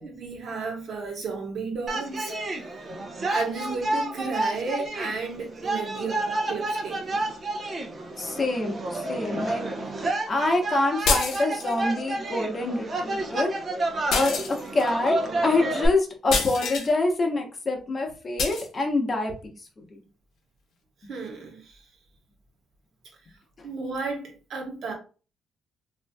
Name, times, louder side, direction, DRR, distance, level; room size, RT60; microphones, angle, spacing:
voice 1, 0.0-2.3 3.3-7.3 21.1-21.8 23.6-24.9, right 4 dB, 65° right, 1.1 m, -33 dB
sound 1, 1.9-15.9, right 2 dB, 40° right, 0.7 m, -30 dB
voice 2, 8.2-9.6 10.3-13.5 14.1-19.3 19.9-20.0, left 2 dB, 35° left, 0.9 m, -26 dB
sound 2, 11.1-11.8 14.1-14.9 16.3-16.9 18.4-18.7, left 4 dB, 80° left, 0.7 m, -27 dB
2.9 x 2.6 x 2.3 m
cardioid pair, 90°, 0 cm